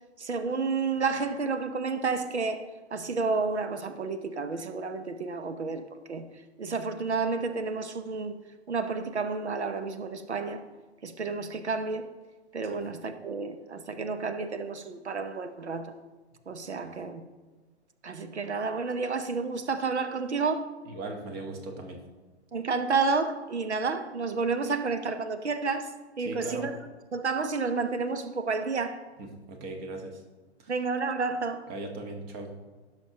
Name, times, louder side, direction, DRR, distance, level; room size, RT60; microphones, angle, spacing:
voice 1, 0.2-2.6 2.9-6.3 6.6-8.4 8.7-10.6 11.0-12.1 12.5-15.9 16.5-17.2 18.0-20.7 22.5-26.7 27.1-29.0 30.7-31.6, right 4 dB, 85° right, 0.8 m, -30 dB
voice 2, 20.8-22.0 26.2-26.6 29.2-30.2 30.6-30.7 31.7-32.5, right 2 dB, 30° right, 1.4 m, -38 dB
16.0 x 6.2 x 2.8 m
figure-of-eight pair, 115°, 33 cm